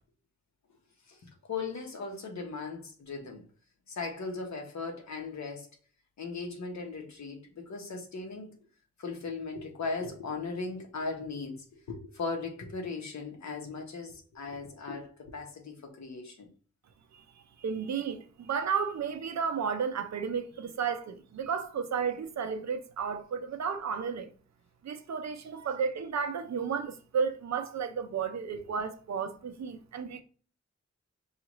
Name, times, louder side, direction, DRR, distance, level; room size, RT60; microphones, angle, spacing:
voice 1, 1.1-3.4 3.9-5.7 6.2-8.6 9.0-16.5, left 4 dB, 65° left, 1.0 m, -38 dB
voice 2, 17.6-24.3 24.8-30.2, right 6 dB, 65° right, 0.6 m, -33 dB
5.6 x 2.4 x 3.0 m
wide cardioid pair, 150°, 29 cm